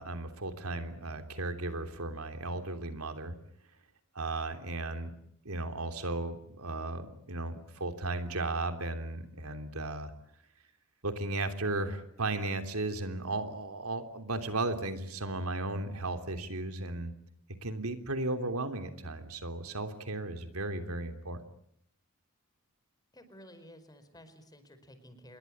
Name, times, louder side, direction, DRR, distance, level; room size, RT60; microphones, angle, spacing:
voice 1, 0.0-3.3 4.1-5.1 5.4-10.1 11.0-17.1 17.6-21.4, right 2 dB, 80° right, 8 dB, 3.2 m, -35 dB
voice 2, 23.1-25.4, equal, 20° left, 10 dB, 4.8 m, -53 dB
28.0 x 22.0 x 8.7 m, 0.72 s
head